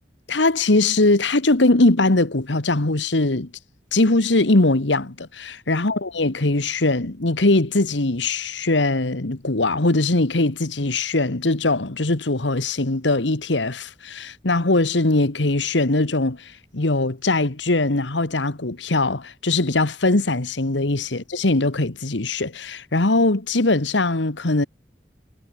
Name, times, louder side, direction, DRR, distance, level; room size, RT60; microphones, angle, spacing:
voice 1, 0.3-3.5 3.9-24.7, left 2 dB, 85° left, 1.6 m, -21 dB
head